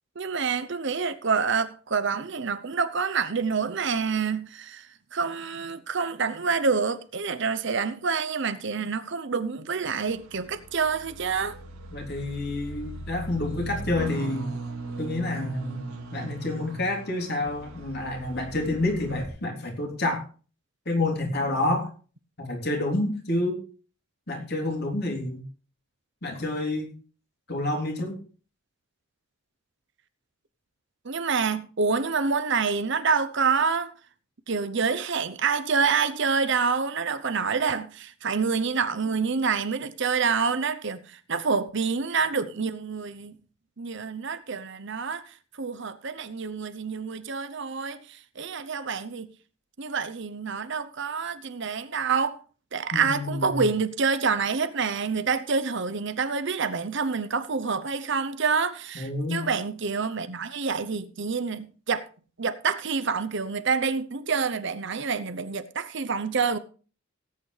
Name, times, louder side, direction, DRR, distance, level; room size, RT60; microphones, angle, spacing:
voice 1, 0.2-4.9 5.1-11.6 31.0-33.9 34.5-43.4 43.8-49.3 49.8-52.4 52.7-62.1 62.4-66.6, right 5 dB, 55° right, 0.8 m, -27 dB
sound 1, 9.8-19.3, right 2 dB, 85° right, 2.5 m, -38 dB
voice 2, 11.9-14.5 15.0-15.8 16.1-20.2 20.8-21.9 22.4-23.6 24.3-25.4 26.2-26.9 27.5-28.2 52.9-53.6 58.9-59.5, left 2 dB, 50° left, 3.4 m, -28 dB
18.5 x 8.8 x 3.3 m
head